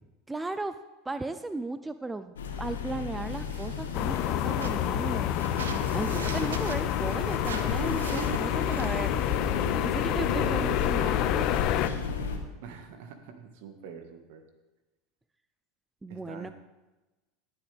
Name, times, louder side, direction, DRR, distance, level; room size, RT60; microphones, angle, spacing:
voice 1, 0.3-0.8 1.1-9.2 9.8-11.5 16.0-16.5, right 2 dB, 15° right, 11 dB, 0.5 m, -36 dB
sound 1, 2.4-12.4, left 5 dB, 85° left, 1.5 m, -34 dB
sound 2, 3.2-9.4, right 6 dB, 85° right, 0.9 m, -42 dB
sound 3, 3.9-11.9, left 12 dB, 55° left, 0.7 m, -28 dB
voice 2, 12.6-14.4 16.1-16.5, right 7 dB, 70° right, 6 dB, 1.8 m, -46 dB
18.0 x 8.8 x 3.5 m, 1.1 s
hypercardioid pair, 85°, 0 cm